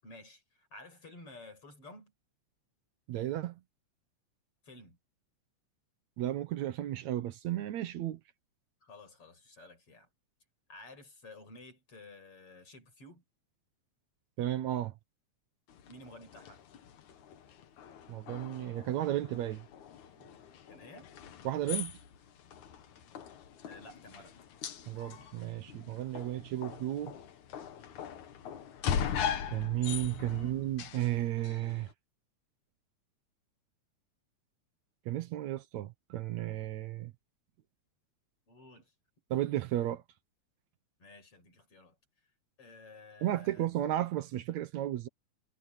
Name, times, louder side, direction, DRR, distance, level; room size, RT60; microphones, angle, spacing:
voice 1, 0.0-2.1 4.6-5.0 8.8-10.1 10.7-13.2 15.9-16.6 20.7-21.1 23.6-24.4 30.2-30.6 38.5-38.9 41.0-42.0 42.6-43.7, left 2 dB, 50° left, 7.5 m, -52 dB
voice 2, 3.1-3.6 6.2-8.2 14.4-14.9 18.1-19.7 21.5-21.9 24.9-27.1 29.5-31.9 35.1-37.1 39.3-40.0 43.2-45.1, right 13 dB, 75° right, 2.3 m, -33 dB
sound 1, 15.7-31.9, left 8 dB, 80° left, 3.0 m, -41 dB
omnidirectional pair, 3.3 m